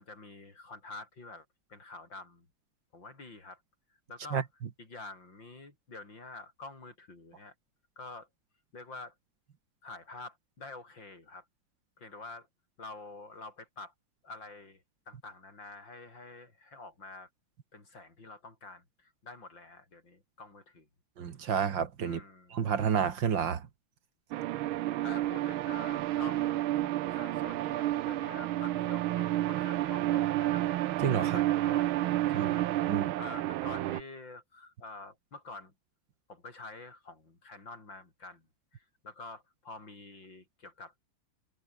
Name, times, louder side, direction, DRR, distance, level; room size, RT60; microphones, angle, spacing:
voice 1, 0.0-2.5 2.9-3.6 4.1-4.5 4.8-7.5 8.0-8.3 8.7-9.1 9.8-11.4 12.0-12.5 12.8-13.9 14.2-17.3 17.7-20.9 22.0-22.6 25.0-30.6 31.2-35.7 36.3-38.4 38.7-41.0, left 3 dB, 65° left, 6.4 m, -47 dB
voice 2, 21.2-22.2 22.5-23.6 31.0-31.4 32.3-32.5 32.9-33.1, right 7 dB, 65° right, 2.3 m, -29 dB
sound 1, 24.3-34.0, right 15 dB, 85° right, 1.6 m, -30 dB
omnidirectional pair, 2.2 m